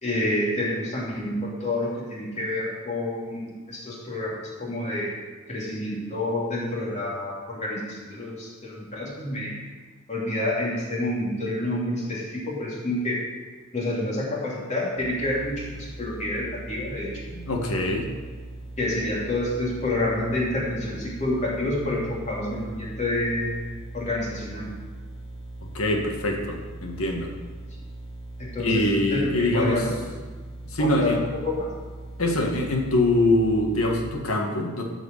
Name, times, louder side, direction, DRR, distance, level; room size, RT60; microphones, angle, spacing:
voice 1, 0.0-5.2 5.5-9.6 10.1-13.2 13.7-17.2 18.8-23.6 23.9-24.7 28.4-29.9 30.8-31.2 31.4-31.7, left 1 dB, 35° left, -5 dB, 2.9 m, -28 dB
sound 1, 15.0-34.0, right 1 dB, 60° left, 1.8 m, -40 dB
voice 2, 17.3-18.1 25.6-27.3 28.6-29.8 30.6-31.2 32.2-34.8, left 1 dB, 85° left, 1 dB, 1.8 m, -24 dB
13.5 x 5.0 x 6.6 m, 1.4 s
head